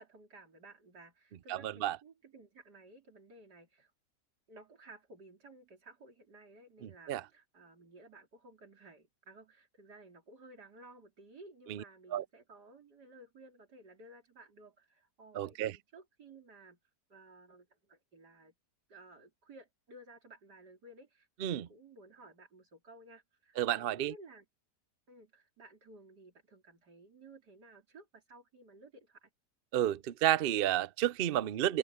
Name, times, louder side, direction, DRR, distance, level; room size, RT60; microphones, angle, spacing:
voice 1, 0.0-3.9 4.5-16.8 17.1-18.5 18.9-24.5 25.1-29.3, right 2 dB, 90° right, 4.0 m, -56 dB
voice 2, 1.5-2.0 6.8-7.2 11.7-11.8 12.1-12.2 15.3-15.8 21.4-21.7 23.6-24.1 29.7-31.8, right 12 dB, 75° right, 0.5 m, -31 dB
omnidirectional pair, 1.7 m